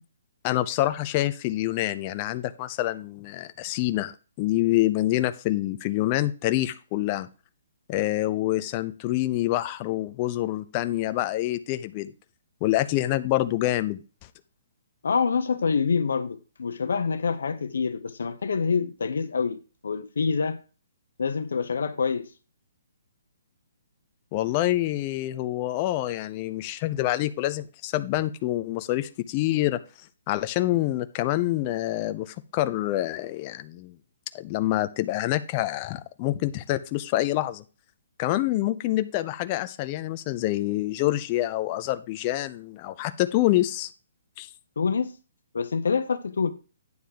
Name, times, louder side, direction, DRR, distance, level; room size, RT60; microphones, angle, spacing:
voice 1, 0.4-4.1 4.4-7.3 7.9-12.1 12.6-14.0 24.3-29.8 30.3-34.0 34.3-37.6 38.2-43.9 44.4-44.5, left 15 dB, 30° left, 0.5 m, -26 dB
voice 2, 15.0-20.6 21.2-22.3 44.8-45.1 45.5-46.5, left 5 dB, 80° left, 0.9 m, -26 dB
9.5 x 3.5 x 6.6 m
hypercardioid pair, 160°, 0 cm